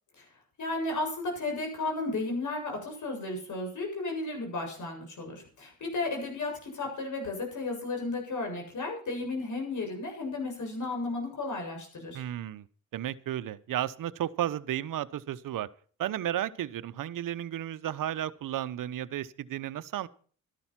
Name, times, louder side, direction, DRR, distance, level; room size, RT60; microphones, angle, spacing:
voice 1, 0.6-12.2, left 2 dB, 60° left, 2 dB, 7.5 m, -34 dB
voice 2, 12.1-12.6 12.9-15.7 16.0-20.1, right 11 dB, 65° right, 14 dB, 0.9 m, -33 dB
12.5 x 12.0 x 5.9 m, 0.44 s
supercardioid pair, 65°, 35 cm